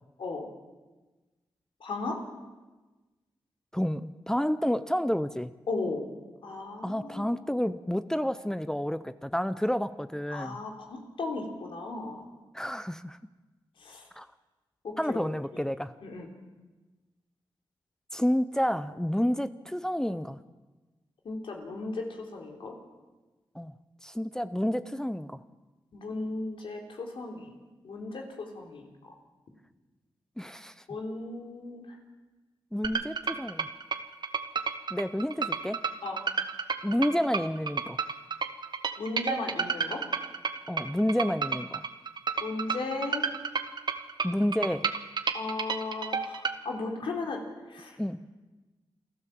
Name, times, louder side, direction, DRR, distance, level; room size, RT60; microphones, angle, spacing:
voice 1, 1.8-2.2 5.7-6.1 6.4-7.3 10.3-12.3 13.8-14.0 14.8-15.2 16.0-16.3 21.3-22.0 22.3-22.7 25.9-27.5 27.8-29.1 30.9-32.0 36.0-36.2 39.0-40.0 42.4-43.2 45.3-47.4 47.7-48.0, left 3 dB, 80° left, 2 dB, 3.7 m, -36 dB
voice 2, 3.7-5.5 6.8-10.6 12.5-13.2 14.2-14.3 15.0-15.9 18.1-20.4 23.5-23.7 24.0-25.4 30.4-30.7 32.7-33.7 34.9-35.8 36.8-38.0 40.7-41.8 44.2-44.9 48.0-48.2, equal, 5° left, 13 dB, 0.7 m, -29 dB
sound 1, 32.8-46.6, right 5 dB, 55° right, 1.5 m, -31 dB
28.5 x 12.0 x 7.6 m, 1.2 s
cardioid pair, 65°, 9 cm